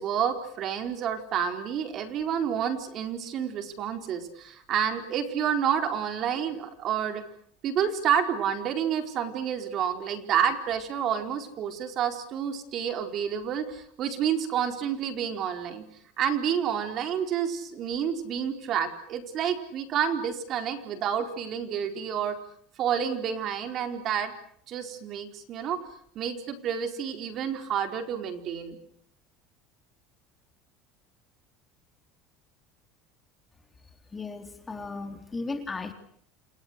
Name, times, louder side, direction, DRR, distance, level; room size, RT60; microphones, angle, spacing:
voice 1, 0.0-7.2 7.6-15.8 16.2-22.4 22.8-24.3 24.7-25.8 26.1-28.8, right 8 dB, 45° right, 7 dB, 4.4 m, -29 dB
voice 2, 34.1-35.9, left 3 dB, 15° left, 7 dB, 3.4 m, -35 dB
30.0 x 28.5 x 6.6 m, 0.66 s
supercardioid pair, 135°, 0 cm